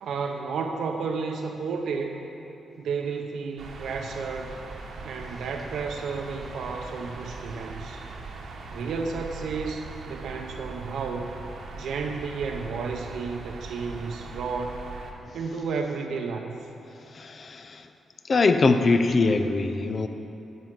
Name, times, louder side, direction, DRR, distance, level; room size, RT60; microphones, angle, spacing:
voice 1, 0.0-2.2 2.8-4.5 5.0-8.0 8.7-11.3 11.7-14.8 15.3-16.6, right 5 dB, 75° right, 3 dB, 0.6 m, -32 dB
sound 1, 3.6-15.1, right 3 dB, 60° right, 1.0 m, -40 dB
voice 2, 17.2-17.8 18.3-20.1, left 3 dB, 35° left, 8 dB, 0.5 m, -22 dB
10.5 x 5.7 x 7.4 m, 2.9 s
wide cardioid pair, 175°, 0 cm